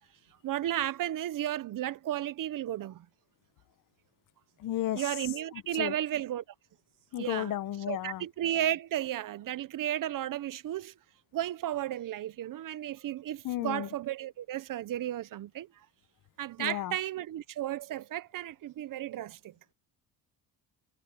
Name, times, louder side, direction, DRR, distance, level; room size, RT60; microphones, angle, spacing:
voice 1, 0.4-3.1 4.9-6.4 7.2-7.5 7.9-10.9 11.3-15.7 16.4-19.5, right 12 dB, 55° right, 0.8 m, -34 dB
voice 2, 4.6-5.1 5.5-5.9 7.1-8.3 13.4-13.9 16.6-17.0, left 13 dB, 60° left, 0.9 m, -33 dB
cardioid pair, 125°, 38 cm